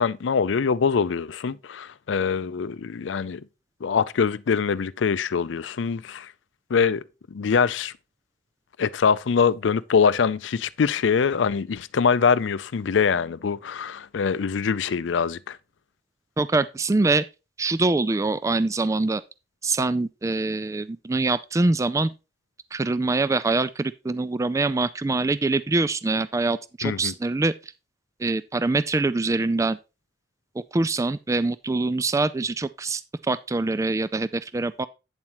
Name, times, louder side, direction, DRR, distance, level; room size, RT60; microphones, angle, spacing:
voice 1, 0.0-3.4 3.8-6.3 6.7-7.0 7.3-7.9 8.8-15.6 26.8-27.1, left 6 dB, 90° left, 0.5 m, -23 dB
voice 2, 16.4-17.2 17.6-19.2 19.6-22.1 22.7-27.7 28.2-29.8 30.7-34.9, right 3 dB, 15° right, 0.3 m, -24 dB
9.0 x 7.2 x 3.0 m
head